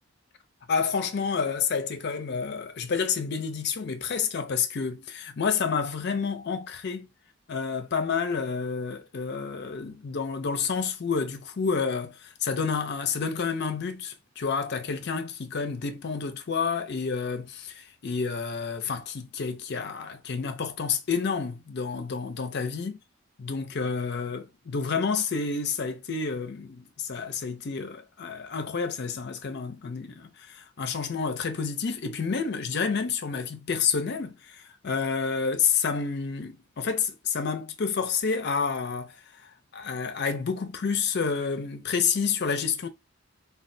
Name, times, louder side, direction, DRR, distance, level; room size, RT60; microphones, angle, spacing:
voice 1, 0.7-7.1 7.5-22.9 23.4-39.2 39.4-42.9, left 5 dB, 55° left, 0.5 m, -29 dB
3.1 x 2.3 x 2.6 m
head